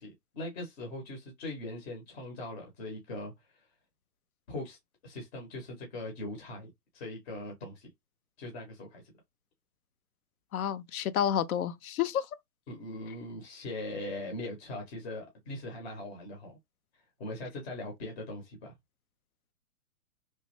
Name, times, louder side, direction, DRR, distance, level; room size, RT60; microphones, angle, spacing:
voice 1, 0.0-3.7 4.5-4.8 5.0-6.7 6.9-7.9 8.4-9.1 12.7-16.6 17.2-18.7, left 1 dB, 40° left, 1.0 m, -40 dB
voice 2, 10.5-12.3, left 9 dB, 65° left, 0.5 m, -30 dB
3.1 x 2.2 x 2.9 m
hypercardioid pair, 150°, 46 cm